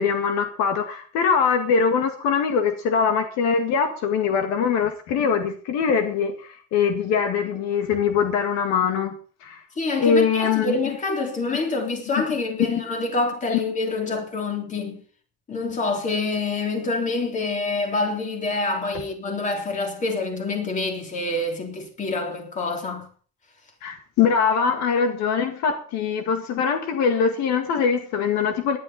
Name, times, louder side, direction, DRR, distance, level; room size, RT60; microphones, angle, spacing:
voice 1, 0.0-9.6 10.0-10.8 12.2-12.3 23.8-28.8, left 6 dB, 70° left, 2.0 m, -22 dB
voice 2, 9.8-15.0 15.5-23.1, left 3 dB, 25° left, 3.6 m, -26 dB
18.5 x 11.5 x 4.2 m
cardioid pair, 170°, 29 cm